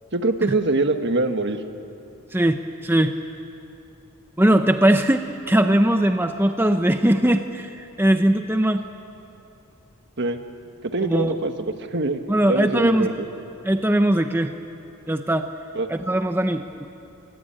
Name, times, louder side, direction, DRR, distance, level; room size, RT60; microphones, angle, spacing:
voice 1, 0.1-1.6 10.2-10.4 10.9-12.2 12.5-13.3 15.7-15.9, right 2 dB, 50° right, 7 dB, 1.5 m, -23 dB
voice 2, 2.3-3.1 4.4-8.8 11.0-11.4 12.3-13.1 13.6-14.5 15.1-15.5 15.9-16.9, right 1 dB, 10° right, 7 dB, 0.7 m, -20 dB
28.5 x 21.5 x 8.9 m, 2.8 s
head